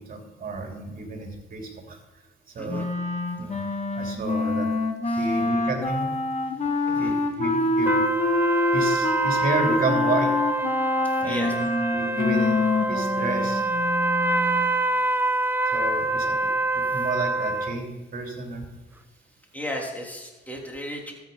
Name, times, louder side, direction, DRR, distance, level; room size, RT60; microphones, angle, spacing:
voice 1, 0.0-2.0 2.5-2.9 3.4-3.6 3.9-4.7 5.2-6.2 7.0-8.0 8.7-10.3 11.2-11.7 11.9-12.6 12.9-13.6 15.7-18.6, right 3 dB, 45° right, 2 dB, 3.1 m, -31 dB
voice 2, 2.6-2.9 5.1-5.3 6.8-7.1 11.0-11.5 16.9-17.0 19.5-21.1, equal, 10° left, -1 dB, 3.3 m, -35 dB
Wind instrument woodwind instrument, 2.7-14.7, left 3 dB, 35° left, 1.8 m, -26 dB
sound 1, 7.9-17.8, right 2 dB, 10° right, 0.6 m, -26 dB
13.5 x 8.3 x 5.4 m, 1.3 s
cardioid pair, 90°, 20 cm